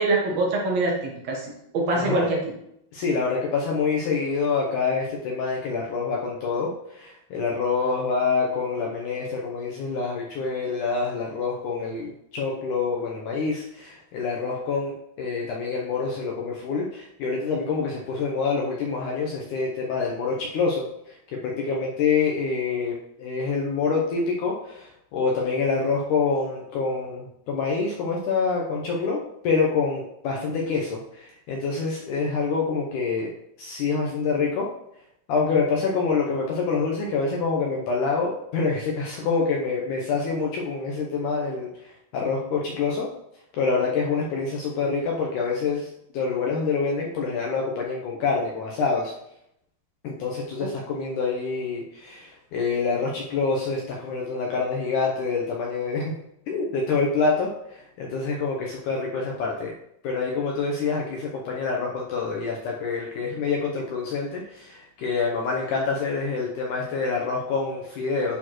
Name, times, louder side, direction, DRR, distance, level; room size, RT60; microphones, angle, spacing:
voice 1, 0.0-2.5 50.6-50.7, right 2 dB, 65° right, -2 dB, 1.6 m, -24 dB
voice 2, 1.9-2.3 2.9-21.2 21.4-33.3 33.6-34.7 35.3-43.1 43.6-45.9 46.1-49.1 50.0-56.1 56.5-59.7 60.0-68.4, left 4 dB, 80° left, -2 dB, 1.8 m, -26 dB
11.0 x 4.4 x 3.0 m, 0.78 s
omnidirectional pair, 4.6 m